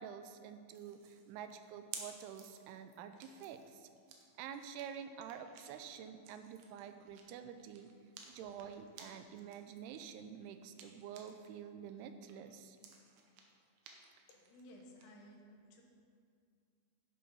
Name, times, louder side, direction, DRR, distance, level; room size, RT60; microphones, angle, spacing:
voice 1, 0.0-3.9 4.4-7.9 8.3-12.8, right 8 dB, 90° right, 9 dB, 2.6 m, -48 dB
sound 1, 0.7-11.5 11.9-15.1, right 6 dB, 70° right, 2.3 m, -56 dB
voice 2, 14.3-15.8, equal, 85° left, 0 dB, 3.3 m, -57 dB
10.5 x 7.1 x 5.5 m, 2.3 s
omnidirectional pair, 4.6 m